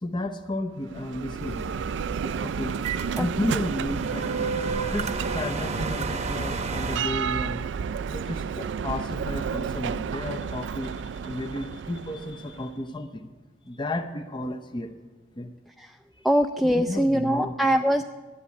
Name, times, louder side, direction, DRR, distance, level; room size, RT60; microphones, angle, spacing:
voice 1, 0.0-1.6 2.4-2.8 3.2-7.6 8.1-13.3 13.7-15.0 15.4-15.5 16.6-17.5, left 1 dB, 25° left, 7 dB, 0.7 m, -33 dB
Bell, 0.8-12.6, right 6 dB, 75° right, 0.3 m, -31 dB
sound 1, 1.4-7.0, right 3 dB, 40° right, 0.8 m, -33 dB
voice 2, 16.2-18.0, equal, ahead, 5 dB, 0.4 m, -22 dB
11.5 x 11.5 x 8.4 m, 1.4 s
head